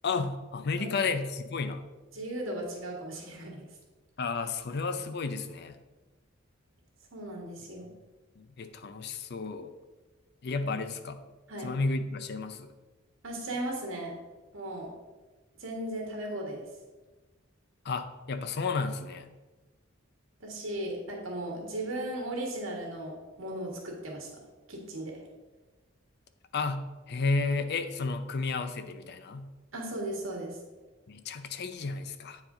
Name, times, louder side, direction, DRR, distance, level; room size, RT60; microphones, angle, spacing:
voice 1, 0.0-1.8 4.2-5.8 8.4-9.7 10.4-11.2 11.6-12.7 17.8-19.3 26.5-29.5 31.1-32.4, left 4 dB, 55° left, 10 dB, 0.5 m, -32 dB
voice 2, 0.8-1.1 2.1-3.6 7.1-7.9 10.6-10.7 11.5-11.7 13.2-14.2 14.5-14.9 15.6-16.6 20.4-24.3 24.7-25.1 29.7-30.6, right 1 dB, 75° right, -1 dB, 1.9 m, -36 dB
8.7 x 4.8 x 3.8 m, 1.2 s
head